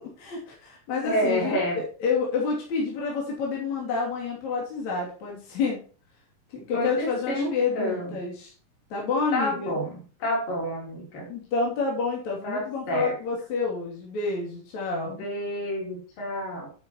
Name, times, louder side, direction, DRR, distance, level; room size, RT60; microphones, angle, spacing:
voice 1, 0.0-5.8 6.5-8.5 8.9-9.8 11.3-15.2, left 4 dB, 55° left, -2 dB, 4.2 m, -29 dB
voice 2, 1.0-1.8 6.7-8.2 9.3-11.3 12.4-13.2 15.1-16.7, equal, 70° left, -1 dB, 5.5 m, -29 dB
11.0 x 8.4 x 3.1 m, 0.38 s
omnidirectional pair, 4.0 m